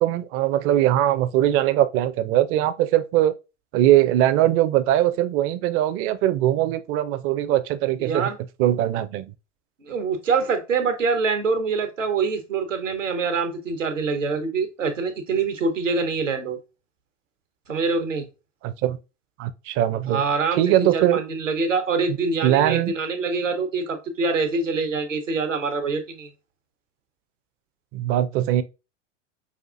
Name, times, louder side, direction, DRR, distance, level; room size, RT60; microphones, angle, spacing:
voice 1, 0.0-3.3 3.7-8.3 8.6-9.3 18.6-19.0 19.4-20.2 20.6-21.2 22.4-22.9 27.9-28.6, right 13 dB, 35° right, 0.5 m, -21 dB
voice 2, 8.0-8.4 9.8-16.6 17.7-18.3 20.1-26.3, right 4 dB, 85° right, 1.1 m, -25 dB
5.7 x 2.4 x 2.5 m
figure-of-eight pair, 90°, 37 cm